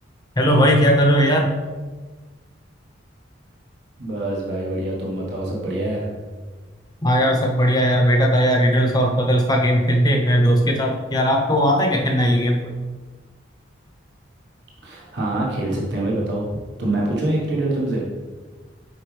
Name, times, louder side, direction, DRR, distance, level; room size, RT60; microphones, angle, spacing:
voice 1, 0.4-1.5 7.0-12.7, equal, 20° left, 2 dB, 0.7 m, -18 dB
voice 2, 4.0-6.1 14.8-18.0, right 1 dB, 60° right, -4 dB, 1.2 m, -25 dB
7.8 x 5.2 x 3.2 m, 1.4 s
head